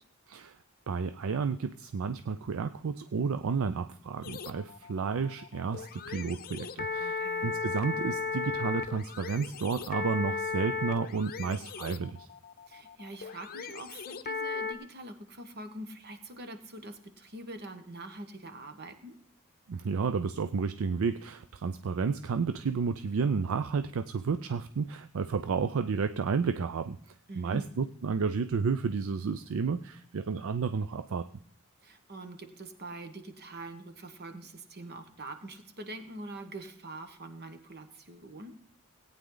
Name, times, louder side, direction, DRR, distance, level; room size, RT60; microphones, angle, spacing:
voice 1, 0.3-0.6 0.9-12.3 19.7-31.3, right 5 dB, 65° right, 12 dB, 0.4 m, -31 dB
sound 1, 4.2-14.7, left 4 dB, 45° left, 0.7 m, -36 dB
voice 2, 7.0-7.6 12.7-19.2 27.3-27.7 31.8-38.6, right 2 dB, 50° right, 8 dB, 1.3 m, -44 dB
18.0 x 8.9 x 3.9 m, 0.66 s
head